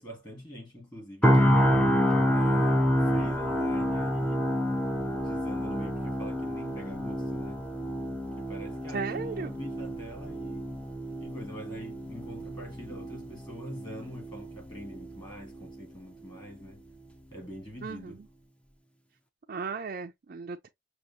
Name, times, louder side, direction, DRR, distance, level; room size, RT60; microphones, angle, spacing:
voice 1, 0.0-1.8 2.3-4.5 5.1-7.7 8.4-10.8 11.2-16.8 17.3-18.2, equal, 25° left, 2.2 m, -44 dB
sound 1, 1.2-15.2 15.6-15.8, equal, 5° left, 0.5 m, -28 dB
voice 2, 8.9-9.5 17.8-18.2 19.5-20.7, right 4 dB, 50° right, 0.4 m, -35 dB
6.4 x 2.4 x 2.7 m
head